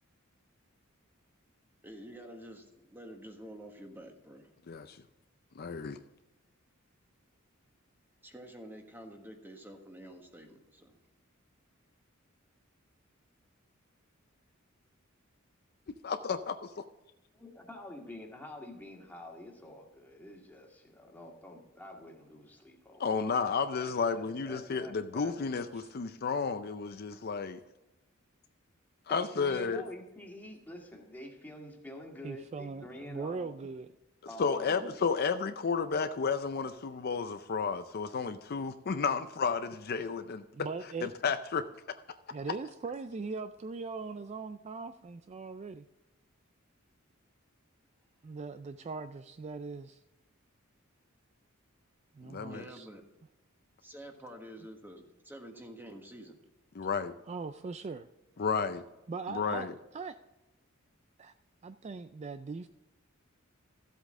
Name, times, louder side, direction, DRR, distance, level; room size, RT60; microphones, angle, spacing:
voice 1, 1.8-4.5 8.2-11.0 52.5-53.0 53.8-56.4, right 1 dB, 10° right, 1.4 m, -48 dB
voice 2, 4.7-5.0 5.5-6.0 15.9-16.7 23.0-27.6 29.1-29.8 34.4-40.4 41.0-41.7 52.2-52.6 56.8-57.1 58.4-58.8 59.3-59.7, left 5 dB, 50° left, 0.5 m, -32 dB
voice 3, 17.3-23.0 23.8-25.6 29.1-33.5 34.3-34.9, left 1 dB, 10° left, 1.9 m, -47 dB
voice 4, 32.2-33.9 40.5-41.1 42.3-45.8 48.2-50.0 52.1-52.9 57.3-58.1 59.1-59.7 59.9-60.2 61.2-61.3 61.6-62.7, right 4 dB, 30° right, 0.3 m, -40 dB
13.5 x 8.2 x 3.7 m
head